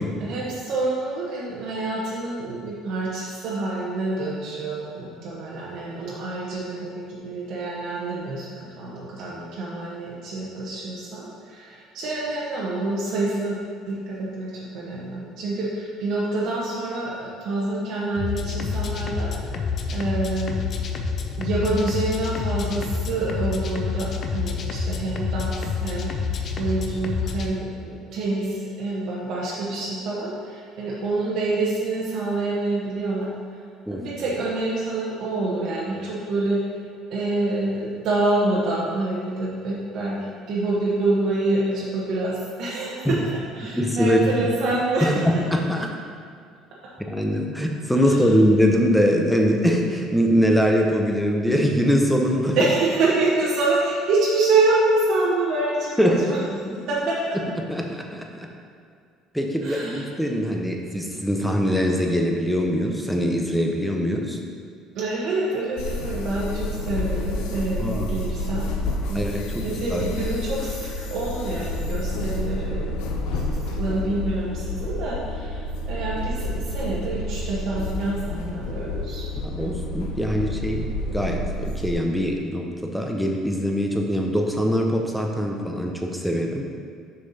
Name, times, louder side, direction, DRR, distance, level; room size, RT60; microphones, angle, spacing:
voice 1, 0.0-13.6 13.9-19.6 19.9-20.6 21.4-33.3 33.9-36.6 37.1-43.2 43.5-45.4 48.0-48.3 52.6-56.4 56.9-57.4 59.6-60.0 64.9-68.8 69.1-69.3 69.6-79.3, right 2 dB, 60° right, -6 dB, 1.1 m, -27 dB
sound 1, 18.1-27.5, left 5 dB, 40° left, 0.6 m, -28 dB
voice 2, 43.6-44.5 45.0-46.0 47.1-52.6 56.0-56.3 56.7-56.8 57.7-58.5 59.3-64.4 67.8-68.2 69.1-69.6 69.9-70.0 79.4-86.6, equal, ahead, 1 dB, 0.7 m, -22 dB
sound 2, 65.8-81.9, left 1 dB, 90° left, 0.7 m, -29 dB
6.6 x 5.7 x 4.2 m, 2.2 s
cardioid pair, 130°, 0 cm